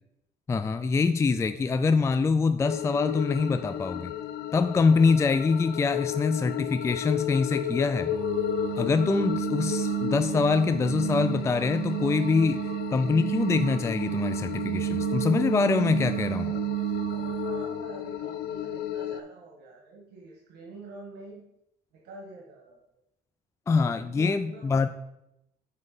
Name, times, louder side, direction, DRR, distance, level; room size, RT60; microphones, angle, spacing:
voice 1, 0.5-4.1 4.5-8.1 8.8-16.5 23.7-24.9, left 4 dB, 15° left, 10 dB, 0.3 m, -24 dB
sound 1, 2.6-19.2, left 10 dB, 75° left, 0.5 m, -34 dB
sound 2, 8.1-17.8, right 18 dB, 35° right, 0.5 m, -31 dB
voice 2, 17.1-21.4 21.9-22.8 24.0-24.8, right 3 dB, 80° right, -2 dB, 1.6 m, -46 dB
7.5 x 4.8 x 4.1 m, 0.81 s
cardioid pair, 110°, 17 cm